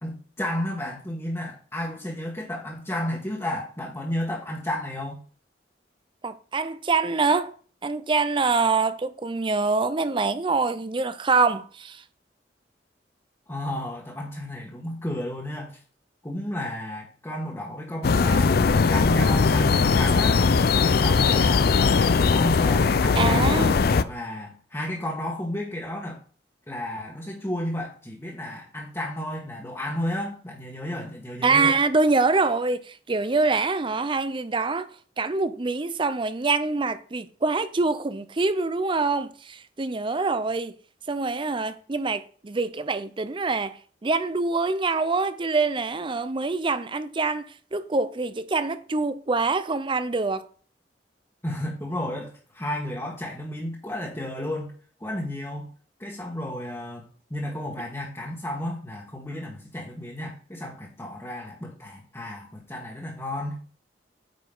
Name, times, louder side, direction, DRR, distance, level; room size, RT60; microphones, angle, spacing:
voice 1, 0.0-5.2 13.5-15.8 16.2-18.6 18.9-20.4 20.8-21.7 22.3-26.2 26.7-31.7 51.4-54.7 55.0-55.7 56.0-63.6, left 1 dB, 15° left, 1.4 m, -32 dB
voice 2, 6.2-7.5 7.8-12.0 23.1-23.8 31.4-34.9 35.2-40.8 41.1-50.5, right 3 dB, 30° right, 0.5 m, -25 dB
sound 1, 18.0-24.0, left 4 dB, 60° left, 0.5 m, -20 dB
9.2 x 5.0 x 3.8 m
head